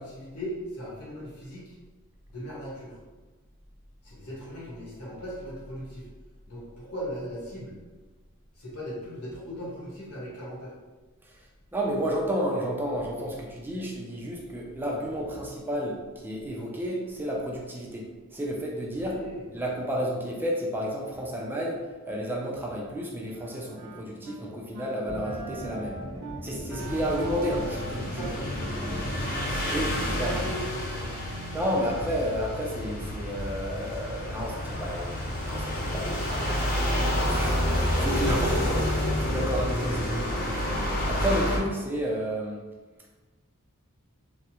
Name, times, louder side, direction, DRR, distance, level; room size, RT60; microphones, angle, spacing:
voice 1, 0.0-1.8 2.3-3.0 4.0-6.1 6.5-7.8 8.5-10.7 19.0-19.4 28.0-29.3 30.1-31.2 36.2-37.3, equal, 85° left, -6 dB, 1.2 m, -38 dB
voice 2, 11.2-19.1 19.5-26.0 26.4-28.3 29.7-30.3 31.5-35.2 35.5-36.6 37.3-42.6, equal, 10° right, -2 dB, 0.3 m, -31 dB
Wind instrument woodwind instrument, 23.3-24.4 24.7-25.0 25.2-30.5, right 4 dB, 80° right, 0.4 m, -42 dB
sound 1, 25.1-30.6, equal, 60° left, 1.1 m, -38 dB
sound 2, 26.8-41.6, left 1 dB, 40° left, 0.6 m, -29 dB
3.3 x 2.0 x 2.9 m, 1.3 s
head